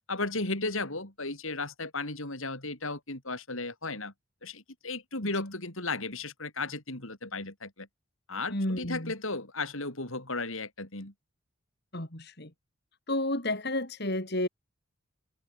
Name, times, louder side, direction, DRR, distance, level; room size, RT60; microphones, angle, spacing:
voice 1, 0.1-4.1 4.4-7.9 8.3-11.1, left 3 dB, 70° left, 5.8 m, -35 dB
voice 2, 8.5-9.1 11.9-12.5 13.1-14.5, left 1 dB, 50° left, 4.0 m, -31 dB
head